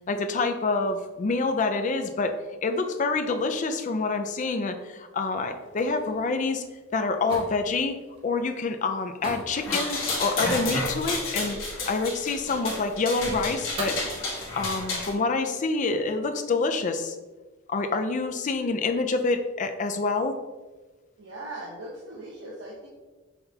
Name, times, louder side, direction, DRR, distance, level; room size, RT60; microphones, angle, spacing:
voice 1, 0.1-2.4 2.6-6.6 6.9-11.6 11.9-14.0 14.5-17.2 17.7-20.4, left 3 dB, 40° left, 7 dB, 0.4 m, -27 dB
sound 1, 5.4-14.1, right 1 dB, 30° right, 0.8 m, -43 dB
sound 2, 9.5-15.1, left 2 dB, 70° left, 1.3 m, -31 dB
voice 2, 21.2-22.9, right 1 dB, 65° right, -4 dB, 0.7 m, -39 dB
5.7 x 3.4 x 2.7 m, 1.2 s
head